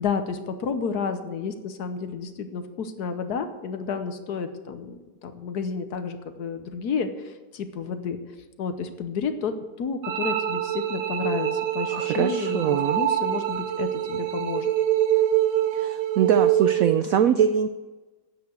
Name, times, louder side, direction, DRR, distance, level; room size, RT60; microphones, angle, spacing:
voice 1, 0.0-8.2 8.6-14.7, left 5 dB, 60° left, 8 dB, 1.3 m, -31 dB
sound 1, 10.0-17.0, right 11 dB, 60° right, 1.0 m, -25 dB
voice 2, 11.9-13.0 15.7-17.7, right 8 dB, 90° right, 10 dB, 0.7 m, -23 dB
9.9 x 8.1 x 8.0 m, 1.2 s
omnidirectional pair, 2.1 m